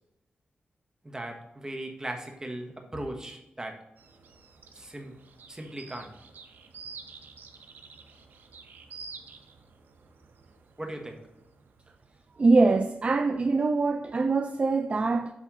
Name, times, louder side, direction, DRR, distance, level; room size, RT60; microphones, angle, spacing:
voice 1, 1.0-3.8 4.7-5.1 5.5-6.1 10.8-11.2, right 1 dB, 20° right, 1.3 m, -38 dB
sound 1, 4.0-12.4, right 4 dB, 80° right, 0.7 m, -49 dB
voice 2, 12.4-15.3, right 3 dB, 35° right, 0.4 m, -23 dB
7.4 x 3.4 x 5.0 m
cardioid pair, 80°, 3 cm